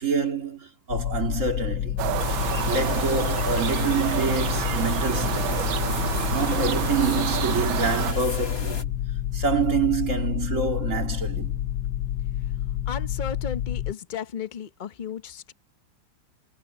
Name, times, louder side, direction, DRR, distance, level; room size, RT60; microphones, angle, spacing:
voice 1, 0.0-2.1 2.5-5.7 6.3-8.9 9.3-11.6, right 5 dB, 40° right, 2.4 m, -27 dB
sound 1, 0.9-13.9, left 11 dB, 85° left, 1.6 m, -29 dB
sound 2, 2.0-8.1, right 11 dB, 75° right, 1.6 m, -28 dB
sound 3, 2.2-8.8, left 3 dB, 40° left, 3.4 m, -35 dB
voice 2, 12.9-15.5, left 7 dB, 60° left, 0.5 m, -34 dB
omnidirectional pair, 2.2 m